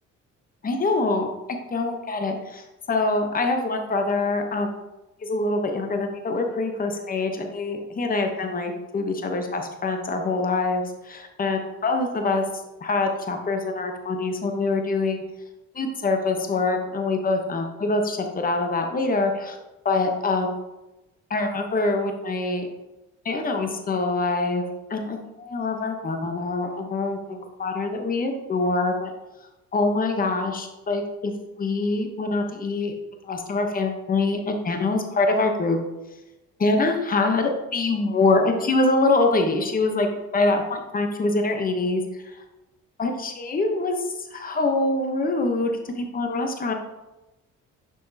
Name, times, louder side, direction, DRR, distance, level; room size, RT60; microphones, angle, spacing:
voice 1, 0.6-1.3 1.7-4.7 5.2-12.4 12.8-15.2 15.7-19.6 19.8-20.5 21.3-22.7 23.2-29.1 29.7-31.3 31.6-32.9 33.2-35.8 36.6-40.1 40.3-42.0 43.0-45.7 46.0-46.7, left 3 dB, 30° left, 4 dB, 0.9 m, -24 dB
6.2 x 6.0 x 2.8 m, 1.0 s
cardioid pair, 90°, 30 cm